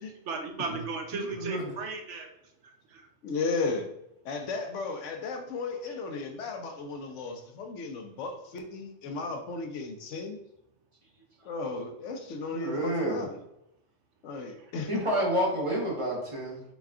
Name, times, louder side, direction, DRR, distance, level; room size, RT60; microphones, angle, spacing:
voice 1, 0.2-2.3 2.6-3.1 5.9-6.0 14.6-15.4, right 4 dB, 70° right, 3 dB, 0.9 m, -37 dB
voice 2, 1.4-1.7 12.5-13.2 14.9-16.6, right 1 dB, 30° right, -3 dB, 0.8 m, -29 dB
voice 3, 3.2-3.9 4.2-10.4 11.4-13.4 14.2-15.0, left 3 dB, 75° left, 4 dB, 0.9 m, -35 dB
4.0 x 2.3 x 3.5 m, 0.81 s
omnidirectional pair, 1.3 m